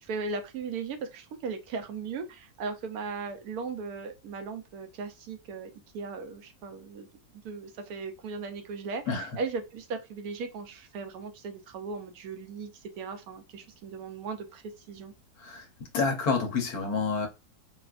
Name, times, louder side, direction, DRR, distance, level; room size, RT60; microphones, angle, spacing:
voice 1, 0.0-7.1 7.4-15.1, right 4 dB, 70° right, 1.1 m, -37 dB
voice 2, 15.9-17.3, left 4 dB, 70° left, 1.3 m, -28 dB
4.1 x 2.4 x 2.3 m
omnidirectional pair, 1.7 m